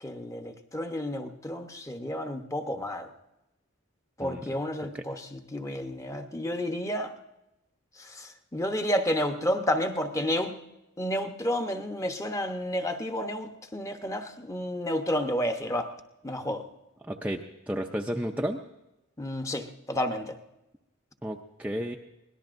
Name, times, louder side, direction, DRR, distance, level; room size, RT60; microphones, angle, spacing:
voice 1, 0.0-3.1 4.2-7.1 8.0-10.6 11.0-15.9 16.2-16.6 19.2-20.3, equal, 15° left, 6 dB, 0.8 m, -31 dB
voice 2, 4.2-4.6 4.9-5.0 17.0-18.6 21.2-22.0, equal, 5° right, 1 dB, 0.5 m, -32 dB
24.0 x 18.5 x 2.5 m, 0.92 s
head